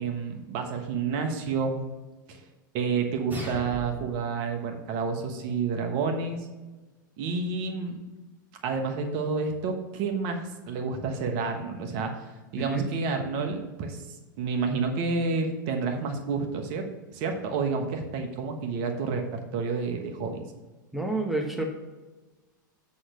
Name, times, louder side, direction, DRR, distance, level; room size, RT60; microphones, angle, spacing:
voice 1, 0.0-1.8 2.3-2.4 2.7-6.4 7.2-8.0 8.6-12.1 12.5-14.0 14.4-16.8 17.1-20.4, right 4 dB, 50° right, 4 dB, 1.2 m, -29 dB
sound 1, 3.3-4.3, right 1 dB, 15° right, 2.3 m, -37 dB
voice 2, 20.9-21.6, right 2 dB, ahead, 1 dB, 1.1 m, -29 dB
7.9 x 4.2 x 6.3 m, 1.2 s
hypercardioid pair, 100°, 11 cm